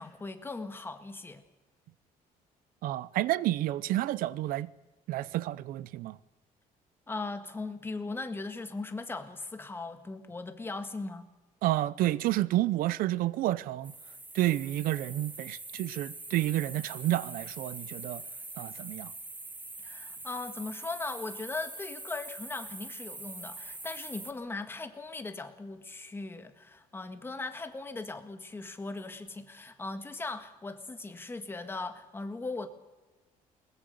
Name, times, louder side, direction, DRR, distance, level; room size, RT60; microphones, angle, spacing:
voice 1, 0.0-1.4 7.1-11.3 19.8-32.7, left 3 dB, 15° left, 1.6 m, -39 dB
voice 2, 2.8-4.7 5.1-6.2 11.6-13.9 14.3-18.2 18.6-19.1, right 15 dB, 75° right, 0.7 m, -30 dB
sound 1, 13.8-24.3, right 2 dB, 10° right, 1.2 m, -44 dB
21.5 x 20.5 x 6.6 m
cardioid pair, 150°, 15 cm